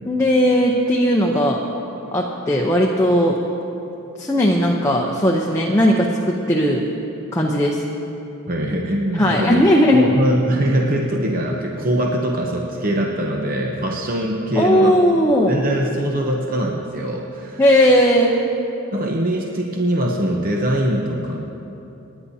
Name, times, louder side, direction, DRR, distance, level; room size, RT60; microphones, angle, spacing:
voice 1, 0.0-1.6 2.1-3.4 4.2-6.9 7.3-7.8 9.1-10.1 14.6-15.6 17.6-18.4, equal, 15° left, -2 dB, 0.7 m, -17 dB
voice 2, 8.5-9.6 10.0-15.0 15.5-17.6 18.9-21.4, right 1 dB, 40° right, 0 dB, 0.8 m, -22 dB
29.5 x 9.8 x 2.8 m, 2.9 s
head